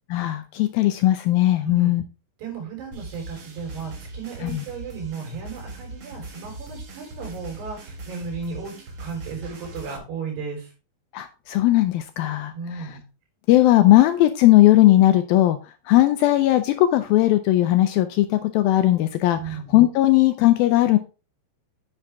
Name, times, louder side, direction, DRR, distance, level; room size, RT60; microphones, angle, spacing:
voice 1, 0.1-2.0 4.4-4.6 11.1-12.5 13.5-15.6 15.9-19.4 19.7-21.0, left 15 dB, 80° left, 9 dB, 2.2 m, -18 dB
voice 2, 1.6-2.0 2.4-8.7 9.0-10.7 12.5-13.0 19.3-19.8, right 5 dB, 85° right, 1 dB, 6.1 m, -34 dB
sound 1, 2.9-10.0, right 2 dB, 55° right, 1.4 m, -40 dB
8.6 x 7.8 x 3.5 m, 0.32 s
omnidirectional pair, 4.7 m